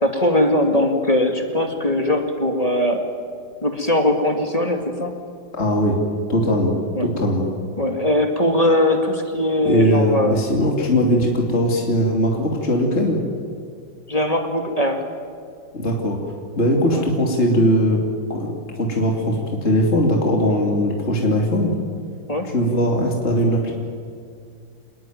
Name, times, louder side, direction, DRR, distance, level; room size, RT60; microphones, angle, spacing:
voice 1, 0.0-3.0 3.6-5.1 7.0-7.1 7.8-10.4 14.1-15.0 16.9-17.0 22.3-22.5, left 1 dB, 20° left, 4 dB, 2.5 m, -20 dB
voice 2, 5.5-6.0 6.3-6.7 7.0-7.4 9.6-13.2 15.7-16.2 16.6-18.0 18.3-21.7 22.5-23.7, equal, 35° left, 0 dB, 3.2 m, -19 dB
27.0 x 20.5 x 9.4 m, 2.3 s
omnidirectional pair, 2.0 m